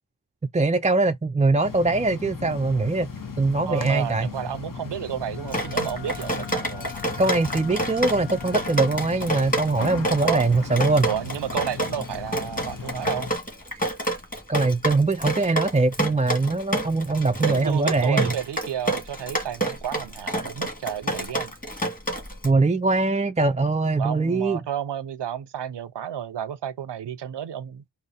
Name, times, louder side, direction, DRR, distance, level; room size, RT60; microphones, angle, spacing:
voice 1, 0.5-3.1 3.4-4.3 7.2-11.1 14.5-18.3 22.4-24.6, right 3 dB, 20° right, 0.3 m, -22 dB
sound 1, 1.6-13.4, left 5 dB, 55° left, 1.0 m, -37 dB
voice 2, 3.7-6.9 10.2-10.4 11.0-13.3 17.4-21.5 24.0-27.8, right 9 dB, 90° right, 0.6 m, -31 dB
Wind instrument woodwind instrument, 5.3-9.3, left 7 dB, 85° left, 1.0 m, -44 dB
Drip, 5.5-22.5, right 1 dB, 20° left, 2.1 m, -28 dB
4.9 x 2.0 x 4.1 m
wide cardioid pair, 45°, 40 cm